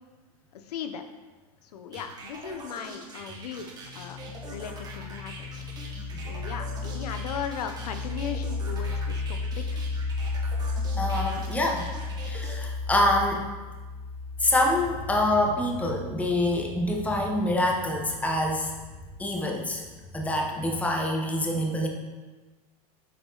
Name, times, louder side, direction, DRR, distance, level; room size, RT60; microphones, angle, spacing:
voice 1, 0.5-1.0 1.6-4.2 4.5-5.7 6.2-9.8, left 7 dB, 85° left, 7 dB, 0.8 m, -37 dB
sound 1, 1.9-12.6, right 3 dB, 20° right, 1.4 m, -43 dB
sound 2, 3.8-19.2, left 4 dB, 50° right, 1.4 m, -34 dB
voice 2, 11.0-11.9 12.2-13.4 14.4-18.7 19.2-19.8 20.1-21.9, left 1 dB, 5° left, 1 dB, 0.9 m, -26 dB
8.2 x 4.9 x 3.9 m, 1.3 s
supercardioid pair, 140°, 19 cm